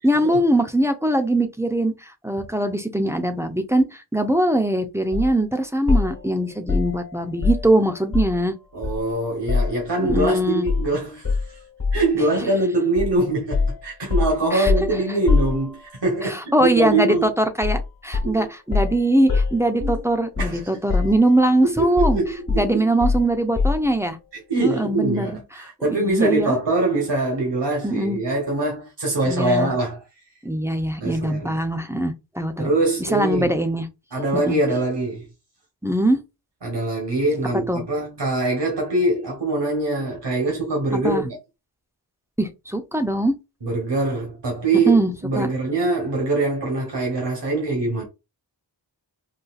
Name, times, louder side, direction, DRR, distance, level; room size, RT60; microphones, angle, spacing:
voice 1, 0.0-8.5 10.0-10.7 14.5-14.7 16.2-22.2 22.5-24.2 24.6-25.4 25.8-26.6 27.8-28.2 29.3-29.7 30.4-32.7 33.0-33.9 34.5-34.6 35.8-36.2 37.7-37.8 40.9-41.2 42.4-43.3 44.9-45.5, right 1 dB, 5° right, 0.5 m, -21 dB
sound 1, 5.1-5.3 5.9-8.5 8.8-10.3 10.7-10.9 11.2-12.1 13.0-13.2 13.5-16.1 17.6-17.9 18.1-20.6 20.9-21.5 22.0-23.9, left 4 dB, 50° left, 1.2 m, -24 dB
voice 2, 8.7-11.6 11.9-17.3 18.2-18.5 19.8-20.0 20.4-20.6 21.6-22.9 24.5-30.0 31.0-31.6 32.6-33.5 34.1-35.2 36.6-41.4 43.6-48.0, right 2 dB, 70° right, 1.2 m, -23 dB
3.9 x 2.4 x 2.4 m
wide cardioid pair, 55°, 43 cm